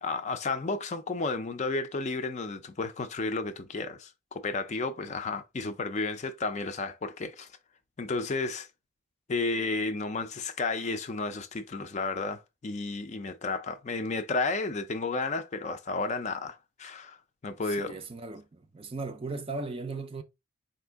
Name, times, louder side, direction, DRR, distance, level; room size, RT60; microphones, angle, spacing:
voice 1, 0.0-7.5 8.0-8.7 9.3-17.2 17.4-18.0, left 3 dB, 35° left, 0.4 m, -32 dB
voice 2, 17.7-20.2, right 3 dB, 25° right, 0.4 m, -37 dB
4.3 x 2.6 x 3.4 m
head